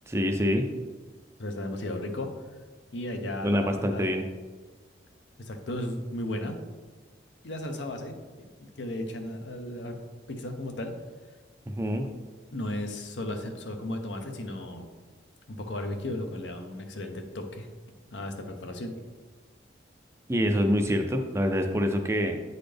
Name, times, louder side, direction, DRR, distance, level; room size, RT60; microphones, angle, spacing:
voice 1, 0.1-0.6 3.4-4.2 11.7-12.1 20.3-22.4, equal, 15° right, 5 dB, 0.4 m, -25 dB
voice 2, 1.4-2.3 2.9-4.1 5.4-6.6 7.4-8.5 8.8-10.0 10.3-10.9 12.5-14.9 15.5-17.7 18.1-19.0, left 1 dB, 75° left, 5 dB, 0.8 m, -35 dB
8.8 x 4.0 x 3.4 m, 1.4 s
head